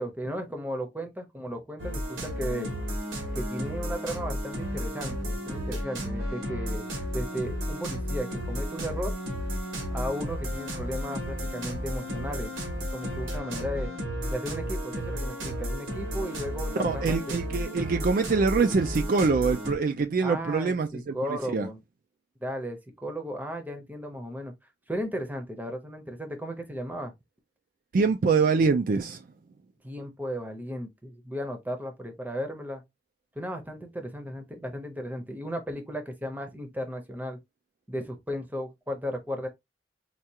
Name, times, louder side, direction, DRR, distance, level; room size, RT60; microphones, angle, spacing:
voice 1, 0.0-2.7 3.3-6.9 7.1-9.1 9.9-12.6 12.9-13.9 14.3-17.4 20.2-21.8 22.4-24.5 24.9-27.1 29.8-32.8 33.4-37.4 37.9-39.5, equal, 10° right, 0.7 m, -35 dB
sound 1, 1.8-19.7, equal, 80° right, 1.3 m, -33 dB
voice 2, 16.8-21.7 27.9-29.2, right 4 dB, 45° right, 0.3 m, -25 dB
4.6 x 2.3 x 2.7 m
head